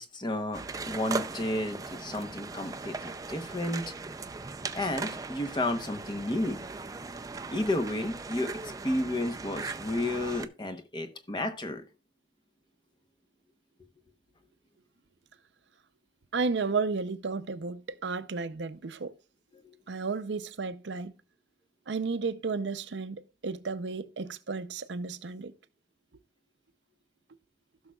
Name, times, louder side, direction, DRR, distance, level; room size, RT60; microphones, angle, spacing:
voice 1, 0.0-3.9 4.7-6.6 7.5-11.8, left 1 dB, 25° left, 0.9 m, -32 dB
sound 1, 0.5-10.5, right 4 dB, 20° right, 0.4 m, -39 dB
voice 2, 16.3-19.1 19.9-21.1 21.9-25.5, right 4 dB, 85° right, 0.6 m, -33 dB
15.5 x 6.3 x 2.3 m
head